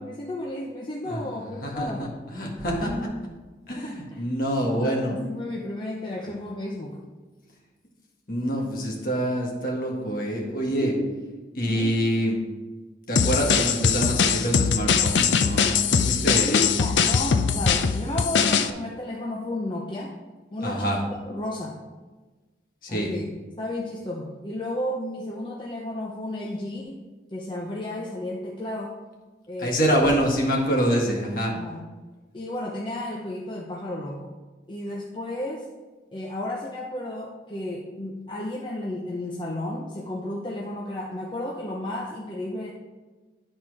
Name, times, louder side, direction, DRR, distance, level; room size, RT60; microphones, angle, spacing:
voice 1, 0.0-2.1 2.8-3.1 3.7-4.2 4.6-7.0 10.8-11.2 11.6-12.0 16.4-20.2 20.5-21.0 21.3-21.8 22.9-23.3 23.6-27.0 27.3-29.0 29.5-30.0 31.5-31.9 32.3-34.3 34.7-35.7 36.1-42.7, left 1 dB, 25° left, -2 dB, 0.7 m, -33 dB
voice 2, 1.1-3.1 3.7-5.2 8.3-10.9 11.6-12.4 13.1-16.6 20.6-21.0 22.8-23.1 29.6-31.5, equal, 50° left, -1 dB, 1.7 m, -26 dB
sound 1, 13.2-18.7, left 6 dB, 85° left, 0.5 m, -21 dB
11.0 x 4.3 x 4.8 m, 1.3 s
head